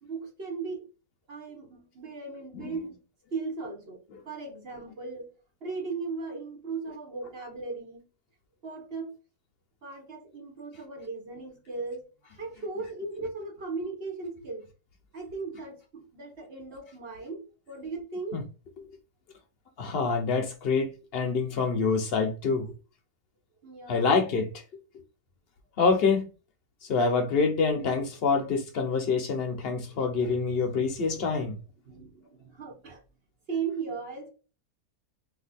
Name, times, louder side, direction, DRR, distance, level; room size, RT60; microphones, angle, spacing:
voice 1, 0.0-0.9 1.3-3.0 3.3-4.0 4.2-5.3 5.6-8.1 8.6-9.1 9.8-12.0 12.4-14.7 15.1-18.4 23.6-24.1 31.1-31.3 31.9-33.0 33.5-34.3, right 4 dB, 40° right, 1.1 m, -37 dB
voice 2, 19.8-22.7 23.9-24.5 25.8-26.2 26.8-31.6, left 4 dB, 55° left, 0.7 m, -26 dB
2.7 x 2.4 x 4.0 m
omnidirectional pair, 1.8 m